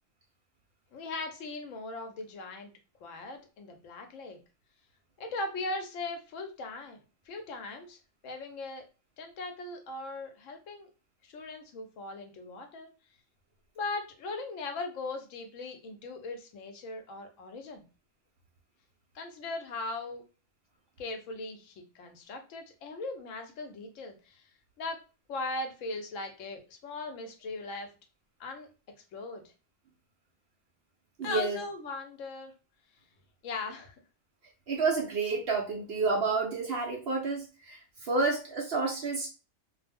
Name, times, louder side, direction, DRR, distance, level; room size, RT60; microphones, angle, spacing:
voice 1, 0.9-2.7 3.0-4.4 5.2-7.0 7.3-8.8 9.2-10.9 11.2-12.9 13.8-17.8 19.1-20.2 21.0-24.5 24.8-25.0 25.3-27.9 28.4-28.7 29.1-29.4 31.2-32.5 33.4-33.9, left 3 dB, 75° left, 5 dB, 0.9 m, -39 dB
voice 2, 31.2-31.6 34.7-39.3, right 4 dB, 60° right, 0 dB, 0.7 m, -30 dB
2.4 x 2.0 x 3.3 m, 0.32 s
omnidirectional pair, 1.4 m